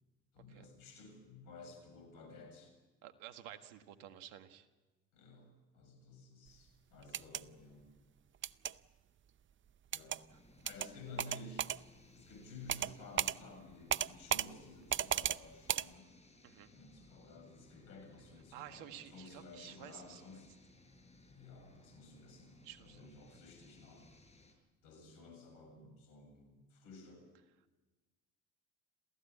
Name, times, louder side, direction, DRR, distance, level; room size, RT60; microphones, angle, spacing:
voice 1, 0.3-2.7 5.1-7.9 9.9-10.3 10.6-11.8 12.1-16.1 16.7-20.5 21.3-24.1 24.8-27.3, left 3 dB, 70° left, 5 dB, 7.4 m, -54 dB
voice 2, 3.0-4.7 16.4-16.7 18.5-20.4 22.6-23.4, right 11 dB, 75° right, 9 dB, 1.7 m, -52 dB
sound 1, 7.0-7.4 8.4-8.7 9.9-10.2 10.7-10.9 11.2-11.8 12.7-12.9 13.2-13.4 13.9-14.5 14.9-15.4 15.7-15.9, right 9 dB, 35° right, 0.6 m, -34 dB
sound 2, 10.3-24.5, left 2 dB, 20° left, 7.1 m, -63 dB
27.5 x 15.5 x 8.7 m, 1.2 s
hypercardioid pair, 60°, 35 cm